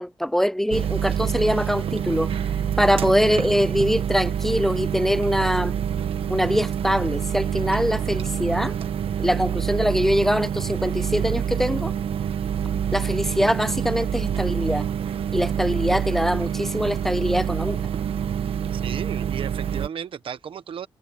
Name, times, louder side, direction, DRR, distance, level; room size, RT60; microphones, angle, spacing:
voice 1, 0.0-2.3 2.8-5.7 6.3-8.7 9.2-11.9 12.9-14.8 15.3-17.8, equal, 5° left, 0.3 m, -23 dB
sound 1, 0.7-19.9, right 8 dB, 90° right, 1.1 m, -26 dB
voice 2, 18.7-20.9, right 8 dB, 70° right, 1.2 m, -35 dB
wide cardioid pair, 175°, 9 cm